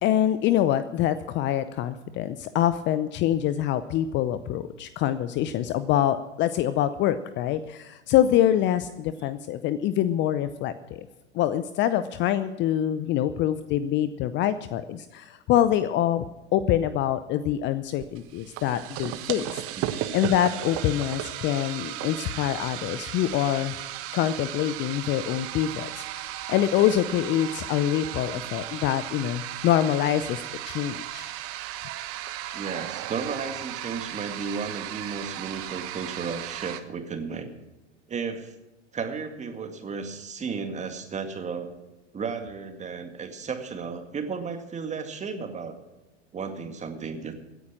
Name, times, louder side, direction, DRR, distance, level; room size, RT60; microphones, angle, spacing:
voice 1, 0.0-11.1 11.3-19.6 20.1-23.7 24.1-31.3, left 11 dB, 30° left, 13 dB, 0.6 m, -25 dB
sound 1, 18.0-36.8, right 13 dB, 40° right, 1.2 m, -35 dB
voice 2, 19.8-20.2 32.5-37.5 38.1-38.5 38.9-41.7 42.1-45.8 46.3-47.3, right 5 dB, 20° right, 6 dB, 2.1 m, -34 dB
16.5 x 9.9 x 6.2 m, 1.1 s
hypercardioid pair, 100°, 36 cm